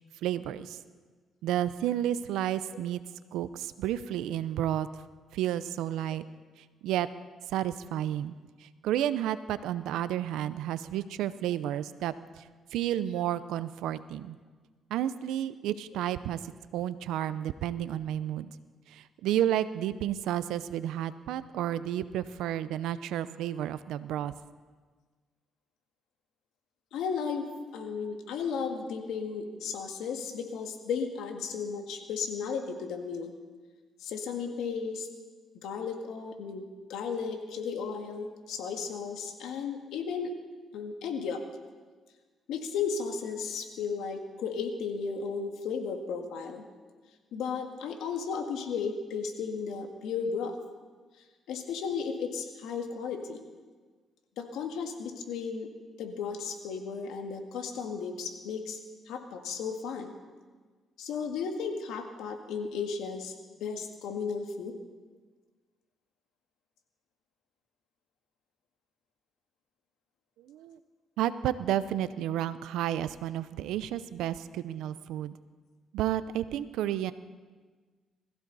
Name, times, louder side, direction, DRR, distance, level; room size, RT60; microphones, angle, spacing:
voice 1, 0.2-0.8 1.4-3.0 3.3-4.9 5.3-6.2 6.8-7.1 7.5-12.4 12.7-14.4 14.9-18.5 18.9-24.3 70.5-70.8 71.2-75.4 75.9-77.1, right 11 dB, 90° right, 14 dB, 0.6 m, -31 dB
voice 2, 26.9-27.5 27.7-33.3 34.0-35.1 35.6-40.3 40.7-41.4 42.5-46.6 47.3-50.6 51.5-53.4 54.4-55.7 56.0-58.8 59.1-60.2 61.0-64.8, left 5 dB, 85° left, 4 dB, 1.9 m, -34 dB
21.5 x 15.0 x 4.1 m, 1.4 s
cardioid pair, 90°, 0 cm